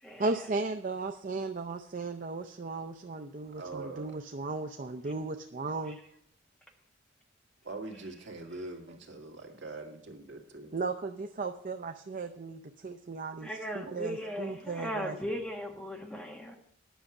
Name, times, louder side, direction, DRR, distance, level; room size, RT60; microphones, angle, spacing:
voice 1, 0.2-6.0 10.7-15.2, right 3 dB, 40° right, 6 dB, 0.5 m, -36 dB
voice 2, 3.6-4.2 7.6-10.8 13.4-13.5 13.8-14.0, right 3 dB, 60° right, 1 dB, 2.0 m, -43 dB
voice 3, 13.4-16.5, equal, 5° left, 2 dB, 1.2 m, -37 dB
10.0 x 6.4 x 7.1 m, 0.74 s
head